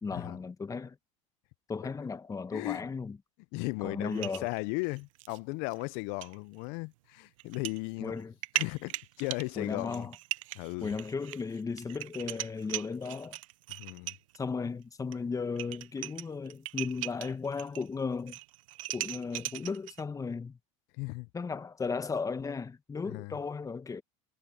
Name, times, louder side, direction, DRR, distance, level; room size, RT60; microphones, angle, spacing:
voice 1, 0.0-1.0 1.7-3.2 3.8-4.5 8.0-8.3 9.6-10.1 10.8-13.4 14.3-18.4 18.9-20.6 21.3-24.0, left 5 dB, 20° left, 1.5 m, -35 dB
voice 2, 2.5-2.9 3.5-8.2 8.5-10.1 10.5-11.0 13.8-14.1 21.0-21.3 23.0-23.4, left 28 dB, 65° left, 0.6 m, -36 dB
sound 1, 4.1-5.4 5.7-5.8 6.2-6.4 7.4-7.8 8.2-14.4 15.1-15.2 15.5-17.9 18.1-20.0, right 18 dB, 80° right, 0.7 m, -39 dB
hypercardioid pair, 90°, 17 cm